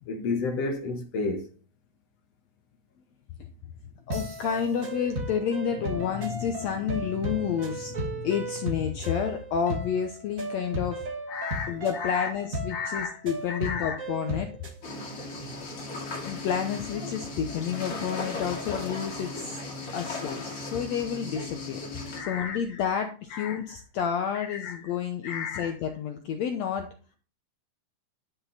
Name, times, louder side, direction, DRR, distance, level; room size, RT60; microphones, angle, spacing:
voice 1, 0.1-1.5 11.3-12.3 12.7-13.1 13.5-14.0 22.1-22.6 23.3-23.6 24.4-24.8 25.2-25.7, left 4 dB, 60° left, 2.0 m, -32 dB
voice 2, 4.1-11.1 11.7-14.5 16.2-19.6 19.9-26.9, left 8 dB, 75° left, 1.6 m, -30 dB
sound 1, 4.1-14.8, right 1 dB, 35° right, 1.4 m, -35 dB
sound 2, 14.8-22.2, left 2 dB, 40° left, 2.4 m, -37 dB
11.0 x 5.7 x 4.1 m
omnidirectional pair, 4.0 m